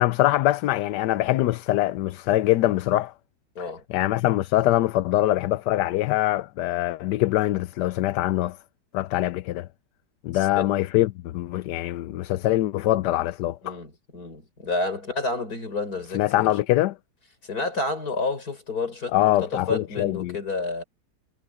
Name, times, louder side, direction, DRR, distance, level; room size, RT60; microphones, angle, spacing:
voice 1, 0.0-3.1 3.6-8.6 8.9-9.7 10.2-13.8 16.1-16.9 19.1-20.4, left 15 dB, 80° left, 1.2 m, -23 dB
voice 2, 13.6-16.5 17.4-20.8, left 3 dB, 60° left, 5.5 m, -30 dB
omnidirectional pair, 1.8 m